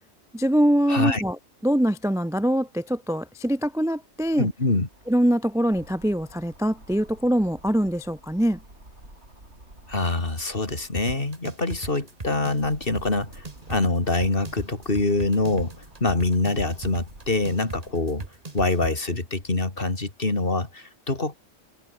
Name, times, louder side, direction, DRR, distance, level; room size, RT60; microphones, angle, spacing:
voice 1, 0.3-1.4 1.6-4.5 5.1-8.6, equal, 5° right, 0.3 m, -23 dB
voice 2, 0.9-1.2 4.4-4.9 9.9-18.3 18.5-21.4, left 2 dB, 45° left, 3.4 m, -25 dB
sound 1, 3.4-11.0 11.5-18.1 18.6-19.7, right 1 dB, 60° right, 7.4 m, -50 dB
sound 2, 11.0-19.0, right 3 dB, 30° right, 1.9 m, -38 dB
omnidirectional pair, 1.3 m